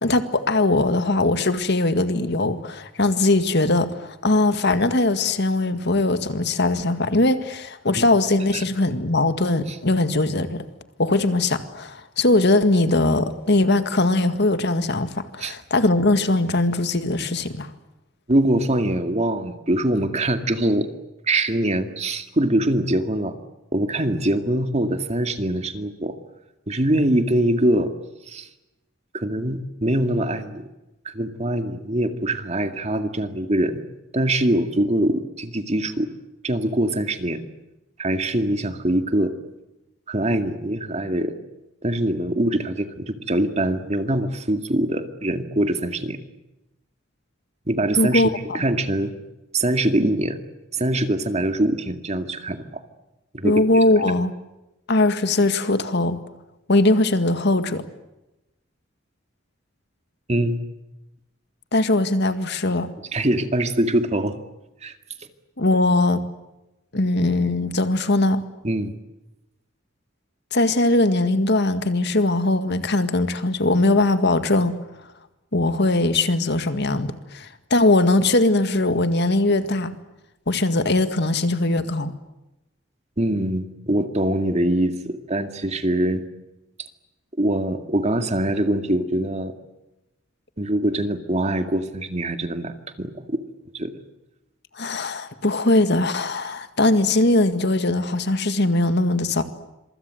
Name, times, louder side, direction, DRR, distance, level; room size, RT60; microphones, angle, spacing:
voice 1, 0.0-10.6 11.0-17.7 48.0-48.6 53.4-54.3 54.9-56.2 56.7-57.8 61.7-62.9 65.6-66.2 66.9-68.4 70.5-74.8 75.5-80.0 80.5-82.1 94.8-99.4, left 2 dB, 55° left, 10 dB, 1.9 m, -20 dB
voice 2, 18.3-20.9 21.3-23.4 23.7-26.1 26.7-27.9 28.3-28.5 29.1-30.7 31.1-33.8 34.1-36.1 36.4-37.4 38.0-39.3 40.1-41.4 41.8-46.2 47.7-49.1 49.5-50.4 50.7-52.8 53.3-53.6 54.0-54.1 60.3-60.6 63.1-64.4 64.8-64.9 68.6-68.9 83.2-86.2 87.4-89.5 90.6-93.4 93.7-93.9, right 1 dB, 35° right, 7 dB, 2.2 m, -23 dB
26.5 x 24.5 x 7.8 m, 0.96 s
head